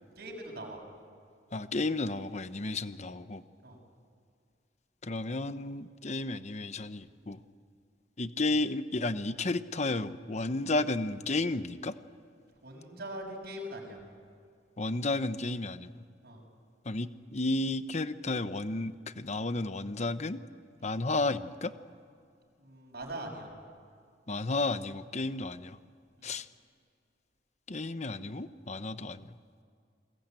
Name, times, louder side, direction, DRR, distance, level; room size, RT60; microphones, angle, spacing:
voice 1, 0.2-0.8 3.6-3.8 12.6-14.0 16.2-16.4 20.8-20.9 22.6-23.5 26.2-26.3, right 1 dB, 60° right, 1 dB, 6.2 m, -42 dB
voice 2, 1.5-3.4 5.0-7.4 8.2-11.9 14.8-15.9 16.9-20.4 20.8-21.7 24.3-25.8 26.2-26.5 27.7-29.2, left 2 dB, 40° left, 12 dB, 1.0 m, -32 dB
29.0 x 21.5 x 9.0 m, 2.3 s
head